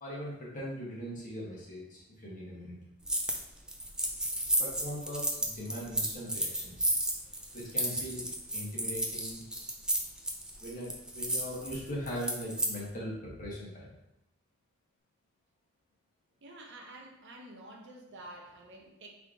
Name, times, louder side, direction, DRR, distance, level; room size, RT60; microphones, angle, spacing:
voice 1, 0.0-2.8 4.6-6.9 7.5-8.3 8.5-9.4 10.6-13.9, equal, 40° left, -5 dB, 1.5 m, -40 dB
sound 1, 3.1-3.4 3.7-12.7, right 1 dB, 5° right, 0.4 m, -32 dB
voice 2, 16.4-19.1, right 1 dB, 60° right, 0 dB, 0.8 m, -49 dB
3.6 x 3.4 x 3.8 m, 0.90 s
head